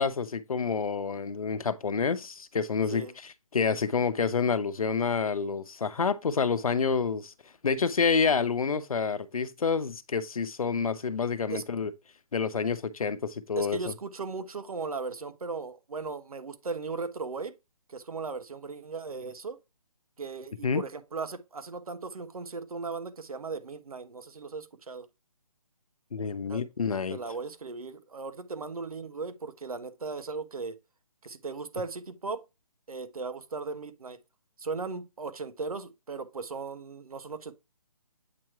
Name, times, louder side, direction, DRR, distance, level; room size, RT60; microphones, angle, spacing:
voice 1, 0.0-3.0 3.5-7.3 7.6-11.9 12.3-13.8 20.6-20.8 26.1-27.2, left 5 dB, 75° left, 0.9 m, -28 dB
voice 2, 13.6-17.5 17.9-19.6 20.2-25.1 26.4-26.6 27.1-30.8 31.2-32.4 32.9-34.2 34.6-37.5, right 4 dB, 80° right, 1.2 m, -37 dB
8.5 x 3.1 x 4.6 m
hypercardioid pair, 170°, 18 cm